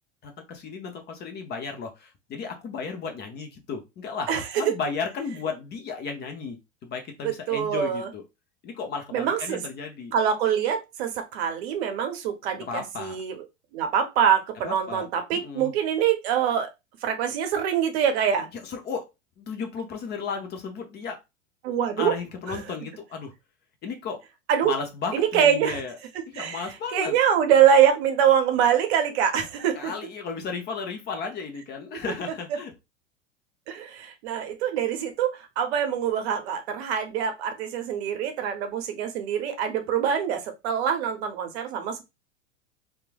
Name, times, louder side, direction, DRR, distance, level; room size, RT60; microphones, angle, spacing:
voice 1, 0.2-6.6 6.8-8.2 8.6-10.1 12.6-13.2 14.6-15.1 15.3-15.7 18.6-19.1 19.4-21.2 22.0-23.3 23.8-24.2 24.6-26.0 26.3-27.2 29.7-32.7, left 5 dB, 25° left, 4 dB, 0.6 m, -34 dB
voice 2, 4.3-4.7 7.2-8.1 9.1-9.6 10.1-13.4 13.7-16.7 17.0-18.5 21.6-22.1 22.5-22.6 24.5-24.7 25.1-25.8 26.1-26.7 26.9-29.9 33.7-42.0, right 8 dB, 55° right, 7 dB, 0.7 m, -24 dB
3.0 x 2.3 x 2.2 m, 0.23 s
hypercardioid pair, 95°, 37 cm